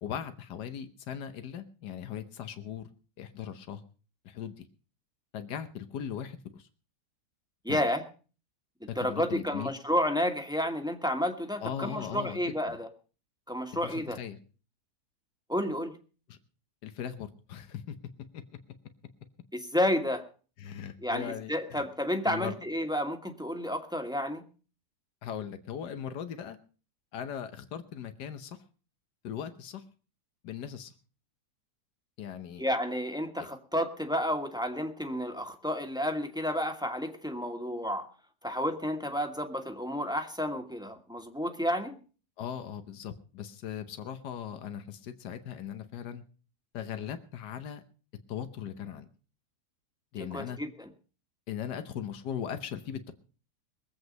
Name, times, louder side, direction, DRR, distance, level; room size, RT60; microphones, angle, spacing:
voice 1, 0.0-2.9 3.2-3.8 4.2-4.6 5.3-6.7 7.7-7.8 9.0-9.7 11.6-12.8 13.8-14.4 16.3-16.4 16.8-17.9 18.3-18.4 20.6-21.8 22.2-22.6 25.2-26.6 27.1-28.6 29.2-29.8 30.4-30.9 32.2-32.6 33.4-33.5 42.4-46.2 46.7-47.8 48.3-49.1 50.1-50.6 51.5-53.1, left 9 dB, 85° left, 9 dB, 1.6 m, -39 dB
voice 2, 7.6-8.0 8.8-12.9 13.5-14.2 15.5-15.9 19.5-20.2 21.0-24.4 32.6-38.1 38.4-42.0 50.2-50.7, equal, 5° right, 5 dB, 1.3 m, -31 dB
22.0 x 8.1 x 5.2 m, 0.38 s
omnidirectional pair, 1.7 m